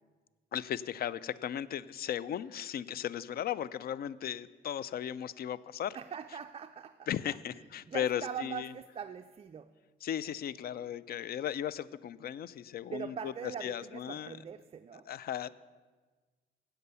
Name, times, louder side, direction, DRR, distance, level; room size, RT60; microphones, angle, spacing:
voice 1, 0.5-6.0 7.1-8.7 10.0-14.4 15.1-15.5, left 10 dB, 50° left, 19 dB, 0.4 m, -36 dB
voice 2, 5.9-7.1 7.5-9.7 12.9-15.1, right 7 dB, 30° right, 7 dB, 0.4 m, -42 dB
8.3 x 7.8 x 6.7 m, 1.4 s
cardioid pair, 90°, 20 cm